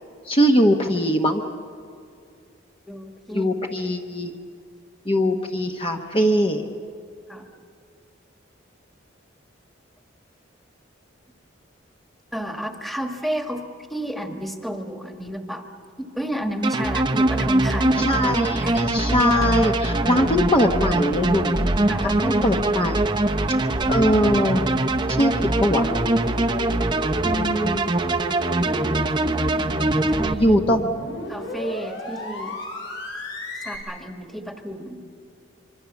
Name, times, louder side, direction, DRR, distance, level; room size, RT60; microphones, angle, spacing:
voice 1, 0.3-1.4 3.3-4.3 5.1-6.6 18.0-23.0 23.5-23.6 23.9-24.7 25.1-26.0 27.2-27.9 30.4-30.8, equal, 30° left, 2 dB, 1.1 m, -21 dB
voice 2, 2.9-3.5 7.3-7.5 12.3-13.6 13.9-15.7 16.0-18.3 18.6-18.8 21.9-22.7 28.6-29.0 29.9-30.6 31.3-32.6 33.6-35.0, equal, ahead, 4 dB, 1.5 m, -31 dB
sound 1, 16.6-30.3, right 2 dB, 25° right, 0.8 m, -22 dB
sound 2, 23.8-33.8, equal, 65° left, 6.9 m, -34 dB
25.5 x 24.5 x 7.1 m, 2.4 s
head